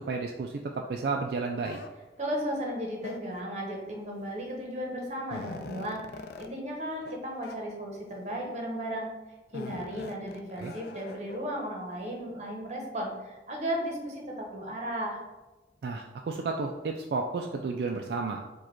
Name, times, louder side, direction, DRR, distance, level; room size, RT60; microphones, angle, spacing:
voice 1, 0.1-0.6 0.9-1.8 10.6-10.7 15.8-18.4, right 4 dB, 70° right, 2 dB, 0.3 m, -32 dB
sound 1, 1.6-1.9 3.0-3.5 4.5-4.6 5.0-6.5 7.0-7.2 7.4-7.6 8.3-8.7 9.5-11.4, left 3 dB, 60° left, 0.3 m, -43 dB
voice 2, 2.2-9.1 9.5-15.2, equal, 40° right, 0 dB, 0.9 m, -35 dB
4.7 x 2.3 x 4.4 m, 1.1 s
head